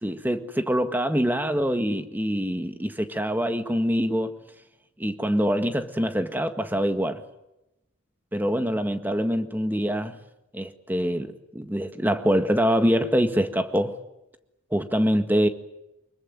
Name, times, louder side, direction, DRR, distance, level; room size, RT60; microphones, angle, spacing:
voice 1, 0.0-4.3 5.0-7.2 8.3-10.2 10.5-13.9 14.7-15.5, equal, 10° right, 8 dB, 1.6 m, -24 dB
25.0 x 22.5 x 9.4 m, 0.90 s
head